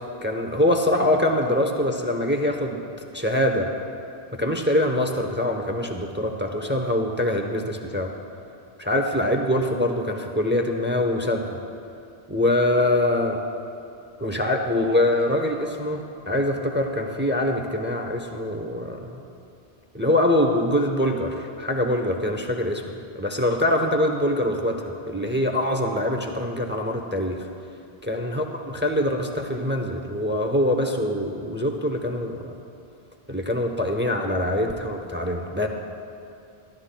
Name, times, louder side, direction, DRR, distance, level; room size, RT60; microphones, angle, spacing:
voice 1, 0.2-2.8 3.1-3.7 4.3-8.1 8.8-11.6 12.3-13.4 14.2-19.2 19.9-27.5 28.1-32.5 33.3-35.7, left 1 dB, 10° right, 3 dB, 0.7 m, -24 dB
23.5 x 13.0 x 2.2 m, 2.6 s
omnidirectional pair, 1.0 m